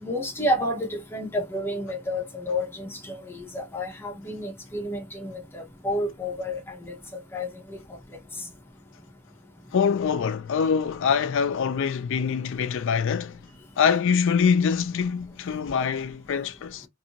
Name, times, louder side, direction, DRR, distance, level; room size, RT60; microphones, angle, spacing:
voice 1, 0.0-6.9 7.3-7.8, left 1 dB, 10° left, 0.7 m, -30 dB
voice 2, 9.7-13.4 13.8-16.9, left 6 dB, 60° left, 0.4 m, -24 dB
2.6 x 2.5 x 2.8 m
head